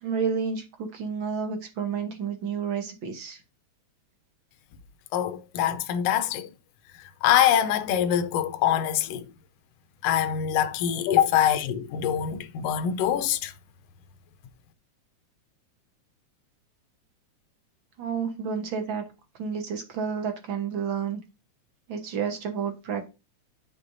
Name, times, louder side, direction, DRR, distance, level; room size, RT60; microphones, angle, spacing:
voice 1, 0.0-3.4 18.0-19.0 19.4-21.2 21.9-23.1, right 6 dB, 55° right, 1.5 m, -30 dB
voice 2, 5.1-6.5 7.2-9.3 10.0-13.5, left 10 dB, 70° left, 1.6 m, -24 dB
10.5 x 5.7 x 2.6 m
omnidirectional pair, 3.4 m